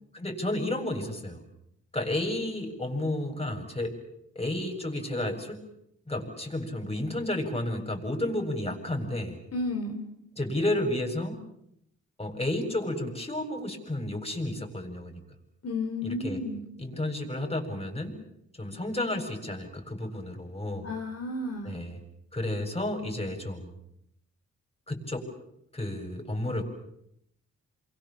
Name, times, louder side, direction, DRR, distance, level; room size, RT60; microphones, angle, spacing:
voice 1, 0.1-1.4 1.9-3.9 4.3-5.6 6.1-9.4 10.4-11.4 12.2-15.2 16.0-16.4 16.8-18.2 18.6-20.9 21.6-22.0 22.3-23.7 24.9-25.3 25.7-26.6, left 1 dB, 20° left, 3 dB, 7.8 m, -31 dB
voice 2, 9.5-10.0 15.6-16.6 20.8-21.8, left 2 dB, 55° left, 1 dB, 4.1 m, -32 dB
28.5 x 24.5 x 7.4 m, 0.77 s
cardioid pair, 70°, 30 cm